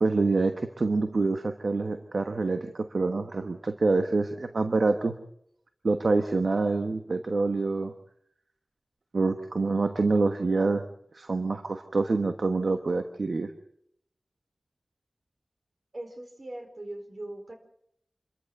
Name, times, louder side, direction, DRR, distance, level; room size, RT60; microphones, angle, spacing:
voice 1, 0.0-5.2 5.8-7.9 9.1-10.9 11.1-13.5, right 3 dB, 70° right, 7 dB, 1.2 m, -26 dB
voice 2, 15.9-17.5, right 1 dB, 55° right, 6 dB, 4.5 m, -40 dB
27.0 x 14.0 x 7.9 m, 0.71 s
wide cardioid pair, 55°, 0 cm